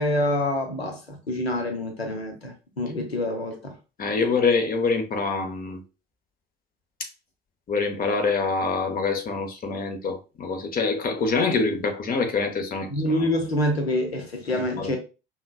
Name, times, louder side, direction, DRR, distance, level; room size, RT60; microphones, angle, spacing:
voice 1, 0.0-3.8 12.9-15.0, left 1 dB, 85° left, 0.8 m, -26 dB
voice 2, 4.0-5.8 7.7-12.9 14.5-14.9, left 4 dB, 30° left, 0.9 m, -25 dB
5.6 x 2.3 x 2.3 m
figure-of-eight pair, 65°, 30 cm